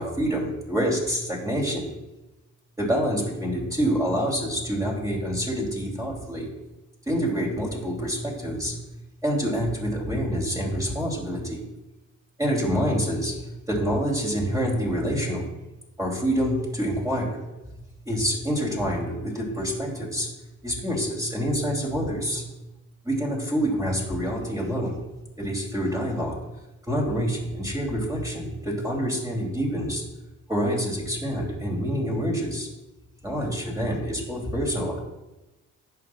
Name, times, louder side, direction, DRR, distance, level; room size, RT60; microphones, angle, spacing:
voice 1, 0.0-1.9 2.8-6.5 7.1-8.7 9.2-11.6 12.4-15.4 16.0-17.4 18.1-20.3 20.6-22.4 23.0-25.0 25.4-26.3 26.9-30.0 30.5-32.7 33.2-35.0, equal, 10° right, -2 dB, 2.9 m, -27 dB
10.5 x 7.0 x 2.3 m, 1.0 s
cardioid pair, 90°, 30 cm